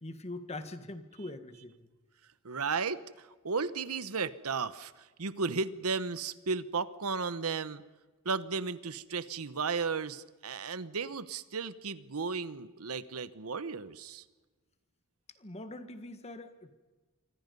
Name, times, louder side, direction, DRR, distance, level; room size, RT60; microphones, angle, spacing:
voice 1, 0.0-1.9 15.4-16.7, left 2 dB, 30° left, 9 dB, 1.6 m, -43 dB
voice 2, 2.4-7.8 8.2-14.2, right 5 dB, 85° right, 14 dB, 1.0 m, -34 dB
28.0 x 24.5 x 5.4 m, 1.3 s
head